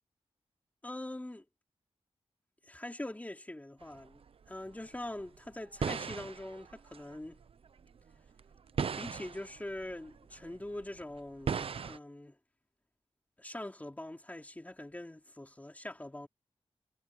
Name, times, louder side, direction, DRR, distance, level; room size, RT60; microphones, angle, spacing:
voice 1, 0.8-1.5 2.6-4.2 4.5-7.4 8.8-12.4 13.4-16.3, left 1 dB, 15° left, 3.9 m, -43 dB
sound 1, 3.8-12.0, right 6 dB, 60° right, 0.7 m, -39 dB
wide cardioid pair, 120°, 11 cm